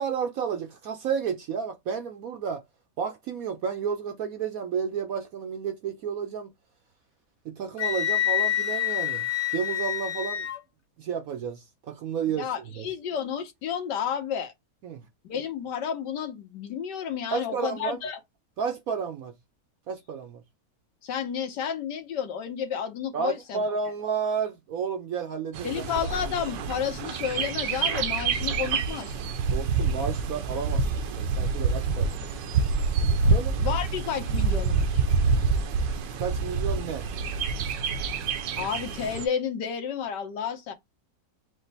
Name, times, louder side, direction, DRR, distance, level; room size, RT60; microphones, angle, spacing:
voice 1, 0.0-2.6 3.0-6.5 7.4-10.5 11.0-12.5 12.8-12.9 14.8-15.0 17.3-18.0 18.6-19.3 19.9-20.4 23.1-25.8 29.5-32.3 33.3-33.6 36.2-37.1, right 6 dB, 65° right, 0.9 m, -31 dB
Wind instrument woodwind instrument, 7.8-10.6, left 11 dB, 60° left, 0.8 m, -27 dB
voice 2, 12.4-14.5 15.2-18.2 21.0-23.6 25.6-29.2 33.6-35.0 38.6-40.7, left 8 dB, 75° left, 1.6 m, -31 dB
Bird, 25.5-39.3, right 4 dB, 80° right, 1.4 m, -27 dB
5.0 x 2.1 x 4.0 m
omnidirectional pair, 1.9 m